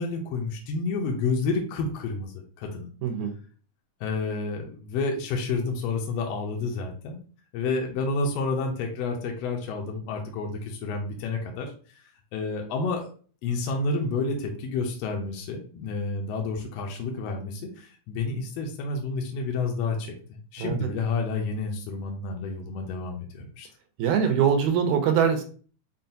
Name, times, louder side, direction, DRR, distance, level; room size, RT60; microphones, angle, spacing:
voice 1, 0.0-2.3 2.6-2.9 4.0-7.2 7.5-11.7 12.3-13.1 13.4-23.7, left 3 dB, 75° left, 1 dB, 1.5 m, -30 dB
voice 2, 3.0-3.3 20.6-20.9 24.0-25.4, right 7 dB, 80° right, 6 dB, 2.0 m, -23 dB
5.7 x 2.2 x 2.6 m, 0.41 s
omnidirectional pair, 3.4 m